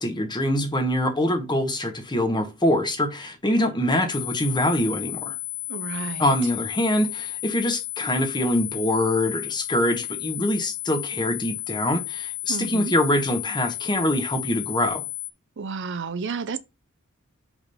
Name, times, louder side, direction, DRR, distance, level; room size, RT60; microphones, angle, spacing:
voice 1, 0.0-5.4 6.2-15.0, left 1 dB, 20° left, 1.2 m, -24 dB
sound 1, 4.1-15.3, left 24 dB, 65° left, 0.6 m, -33 dB
voice 2, 5.7-6.3 12.5-12.9 15.6-16.6, right 4 dB, 55° right, 0.6 m, -31 dB
5.2 x 4.8 x 5.4 m
head